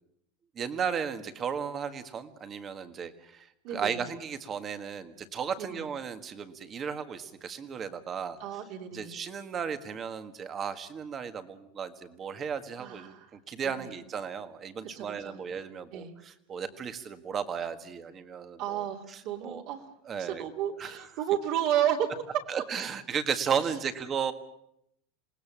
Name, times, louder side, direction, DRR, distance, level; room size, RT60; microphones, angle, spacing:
voice 1, 0.5-8.4 8.9-19.6 20.0-20.4 20.8-21.0 22.5-24.3, right 7 dB, 20° right, 10 dB, 1.7 m, -35 dB
voice 2, 3.6-4.1 5.6-5.9 8.4-9.2 12.8-13.3 13.6-13.9 14.9-15.4 15.9-16.1 18.6-19.9 20.2-22.1, right 10 dB, 45° right, 3 dB, 2.8 m, -32 dB
27.5 x 19.0 x 7.5 m, 0.77 s
supercardioid pair, 165°, 0 cm